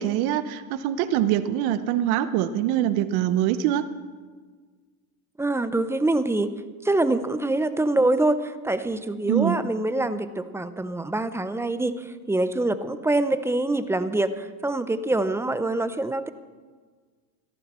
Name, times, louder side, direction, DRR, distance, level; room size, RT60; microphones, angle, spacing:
voice 1, 0.0-3.8 9.3-9.6, right 11 dB, 55° right, 13 dB, 1.0 m, -24 dB
voice 2, 5.4-6.5 6.8-16.3, right 2 dB, 5° right, 12 dB, 0.6 m, -25 dB
17.0 x 13.5 x 4.4 m, 1.5 s
supercardioid pair, 115°, 44 cm